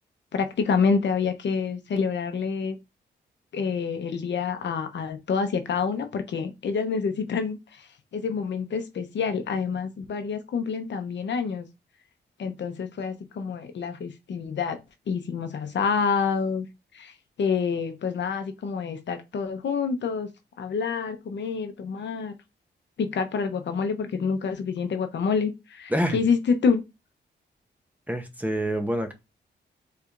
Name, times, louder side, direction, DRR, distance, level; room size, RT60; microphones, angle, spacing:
voice 1, 0.3-2.8 3.5-11.7 12.4-14.8 15.1-16.7 16.9-20.3 20.6-22.3 23.0-26.8, left 5 dB, 70° left, 0.8 m, -27 dB
voice 2, 28.1-29.1, right 1 dB, 10° right, 0.8 m, -26 dB
4.5 x 3.2 x 2.5 m
cardioid pair, 85°, 19 cm